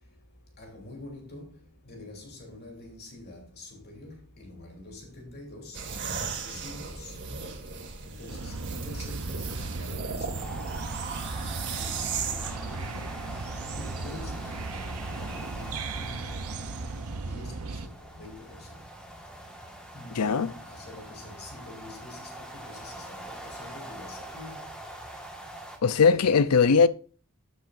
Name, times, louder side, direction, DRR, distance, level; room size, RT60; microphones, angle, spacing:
voice 1, 0.6-1.5 1.8-5.8 6.3-7.2 8.0-13.1 13.7-16.4 17.1-18.8 19.9-24.7 26.0-26.5, left 2 dB, 45° left, 3.3 m, -45 dB
sound 1, 5.7-12.5, right 5 dB, 55° right, 2.0 m, -36 dB
sound 2, 8.3-17.9, right 3 dB, 75° right, 0.7 m, -36 dB
sound 3, 10.3-25.8, right 1 dB, 5° left, 1.6 m, -43 dB
voice 2, 20.2-20.5 25.8-26.9, left 5 dB, 90° left, 0.6 m, -20 dB
12.0 x 7.3 x 2.6 m
head